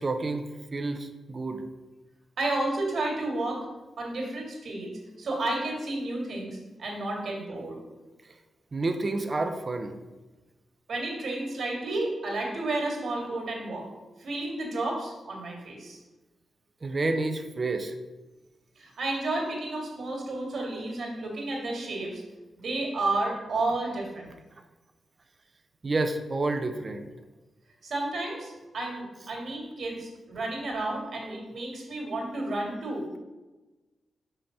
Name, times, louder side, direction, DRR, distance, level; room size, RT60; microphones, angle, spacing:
voice 1, 0.0-1.6 8.7-10.0 16.8-17.9 25.8-27.1, right 2 dB, 30° right, 7 dB, 0.7 m, -29 dB
voice 2, 2.4-3.6 4.0-4.9 5.2-7.8 10.9-13.8 14.2-16.0 18.8-22.2 22.6-24.3 27.8-33.2, right 2 dB, 55° right, -1 dB, 2.5 m, -31 dB
5.9 x 5.6 x 6.7 m, 1.2 s
wide cardioid pair, 160°, 0 cm